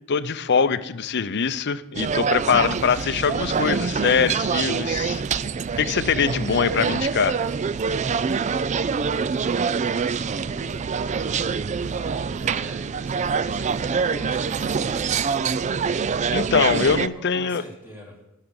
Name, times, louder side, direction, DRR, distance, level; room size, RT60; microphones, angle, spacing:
voice 1, 0.1-5.2 5.8-7.4 16.3-17.6, left 6 dB, 55° left, 14 dB, 0.6 m, -23 dB
sound 1, 1.9-17.1, right 5 dB, 35° right, 0.3 m, -25 dB
voice 2, 9.2-10.9 11.6-15.5 16.5-18.2, equal, 10° right, -2 dB, 3.3 m, -44 dB
13.0 x 6.7 x 8.8 m, 0.92 s
head